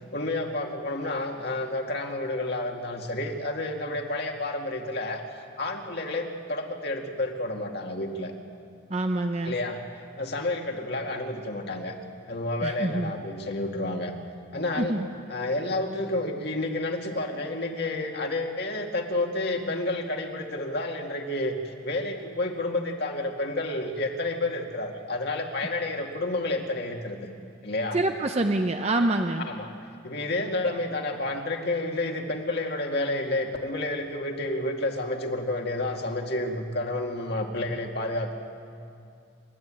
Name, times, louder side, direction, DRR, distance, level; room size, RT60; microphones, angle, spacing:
voice 1, 0.1-5.2 5.6-8.3 9.4-9.8 10.2-11.9 12.3-14.1 14.5-15.0 15.3-21.6 21.8-27.3 27.6-28.0 29.0-29.1 29.4-29.7 30.0-38.3, left 2 dB, 55° left, 2 dB, 2.1 m, -30 dB
voice 2, 8.9-9.6 12.6-13.1 14.8-15.1 27.9-29.5, right 2 dB, 30° right, 5 dB, 0.7 m, -26 dB
29.0 x 12.0 x 8.8 m, 2.5 s
head